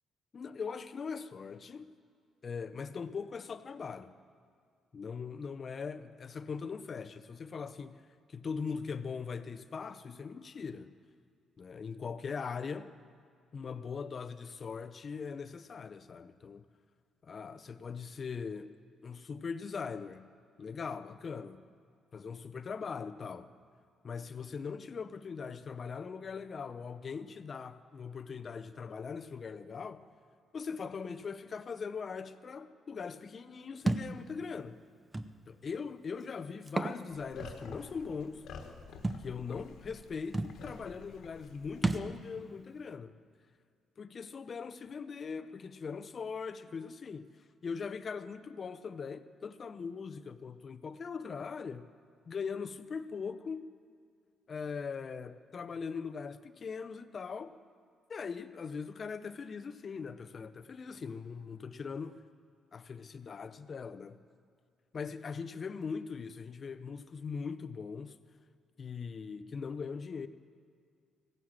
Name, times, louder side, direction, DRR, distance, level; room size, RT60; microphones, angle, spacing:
voice 1, 0.3-1.9 2.4-4.1 4.9-8.0 8.3-10.9 11.6-12.9 13.5-16.6 17.2-18.7 19.0-20.3 20.6-21.7 22.1-23.5 24.0-30.0 30.5-34.8 35.5-38.4 39.2-43.2 44.0-47.3 47.6-51.9 52.3-53.6 54.5-57.6 58.1-62.2 62.7-64.2 64.9-68.2 68.8-70.3, left 5 dB, 45° left, 0.7 m, -40 dB
Thump thud, 33.9-34.1 35.1-35.3 36.6-37.0 37.4-37.5 39.0-39.2 40.0-40.1 40.3-40.6 41.8-42.1, right 2 dB, 20° right, 0.7 m, -31 dB
sound 1, 37.1-42.1, left 5 dB, 80° left, 1.5 m, -49 dB
16.5 x 9.5 x 7.5 m
cardioid pair, 90°, 0 cm